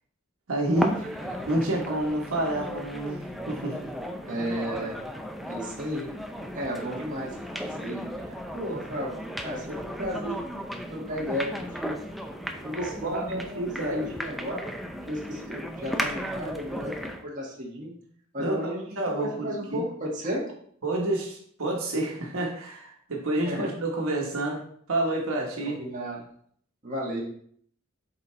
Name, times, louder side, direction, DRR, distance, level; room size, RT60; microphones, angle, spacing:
voice 1, 0.5-1.0 1.5-3.8 12.7-14.1 18.4-19.8 20.8-24.6 24.9-25.8, right 1 dB, 80° right, -1 dB, 1.3 m, -29 dB
sound 1, 0.8-17.3, equal, ahead, 0.4 m, -36 dB
voice 2, 4.2-5.0 5.5-6.1 6.5-7.5 7.8-10.4 10.9-12.0 12.5-14.7 15.1-16.9 17.2-17.9 18.3-20.4 23.4-23.7 25.6-26.2 26.8-27.2, equal, 40° right, -4 dB, 1.7 m, -34 dB
7.9 x 4.2 x 3.2 m, 0.62 s
head